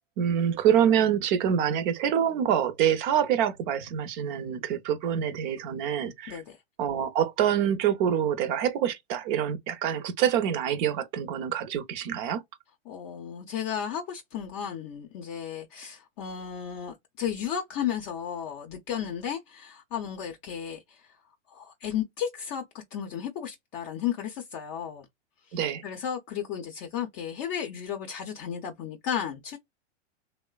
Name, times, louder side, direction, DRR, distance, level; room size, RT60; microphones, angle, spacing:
voice 1, 0.2-6.4 6.8-12.4 25.5-25.8, right 9 dB, 45° right, 0.6 m, -26 dB
voice 2, 12.9-21.0 21.5-22.6 22.9-25.1 25.5-29.6, left 9 dB, 35° left, 0.6 m, -34 dB
3.0 x 2.1 x 2.3 m
hypercardioid pair, 120°, 35 cm